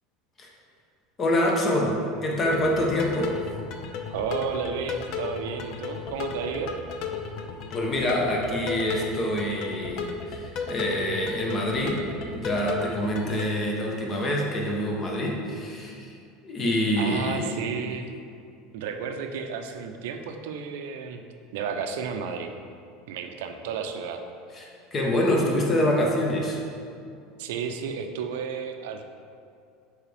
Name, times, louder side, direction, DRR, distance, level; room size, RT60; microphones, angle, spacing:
voice 1, 1.2-3.4 7.7-16.1 16.4-17.6 24.5-26.6, left 1 dB, 25° left, -1 dB, 1.0 m, -26 dB
sound 1, 2.4-13.4, left 5 dB, 50° left, 0.5 m, -34 dB
voice 2, 4.1-6.7 17.0-18.1 18.7-21.2 21.5-22.5 23.1-24.2 27.4-29.0, right 6 dB, 80° right, 6 dB, 0.6 m, -32 dB
7.4 x 4.7 x 3.4 m, 2.4 s
supercardioid pair, 155°, 0 cm